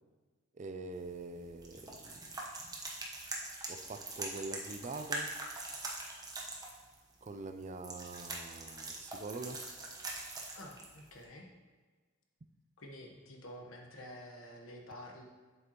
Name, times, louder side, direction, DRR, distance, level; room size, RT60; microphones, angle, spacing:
voice 1, 0.5-2.4 3.7-5.4 7.2-9.7, right 3 dB, 35° right, 8 dB, 0.4 m, -44 dB
sound 1, 0.9-11.2, right 2 dB, 20° right, 1.0 m, -43 dB
voice 2, 10.5-11.5 12.8-15.2, left 1 dB, 85° left, 1 dB, 1.2 m, -49 dB
7.9 x 7.5 x 3.0 m, 1.4 s
head